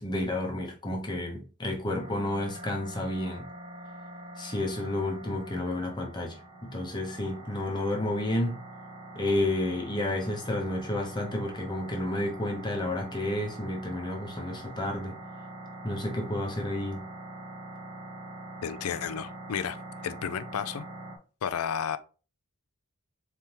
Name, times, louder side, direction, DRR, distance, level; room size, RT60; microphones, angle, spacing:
voice 1, 0.0-3.4 4.4-8.6 9.1-15.2 15.8-17.1, left 1 dB, 20° left, 1.0 m, -31 dB
sound 1, 2.0-21.2, right 1 dB, 25° right, 0.9 m, -44 dB
voice 2, 18.6-19.8 20.0-20.9 21.4-22.0, left 8 dB, 80° left, 0.4 m, -32 dB
4.2 x 3.5 x 3.0 m
head